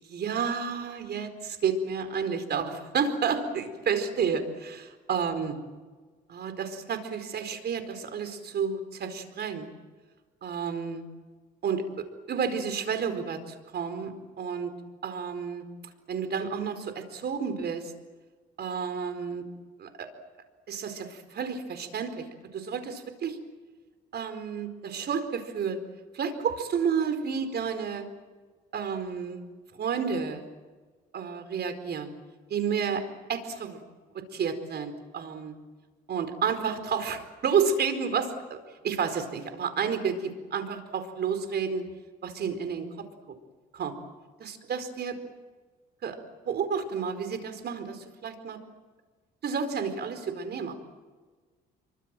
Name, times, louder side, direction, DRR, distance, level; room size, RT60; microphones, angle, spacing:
voice 1, 0.1-5.6 6.3-9.7 10.4-11.0 11.6-14.1 14.4-14.7 15.0-15.6 16.1-17.9 18.6-19.5 19.8-20.1 20.7-22.3 22.5-23.4 24.1-25.8 26.1-28.1 28.7-29.5 29.7-30.4 31.1-32.1 32.5-33.0 33.3-33.8 34.1-35.6 36.1-41.9 42.2-42.9 43.7-43.9 44.4-45.2 46.0-46.2 46.4-48.6 49.4-50.7, right 6 dB, 55° right, 8 dB, 4.6 m, -31 dB
28.0 x 24.0 x 7.7 m, 1.4 s
supercardioid pair, 75°, 20 cm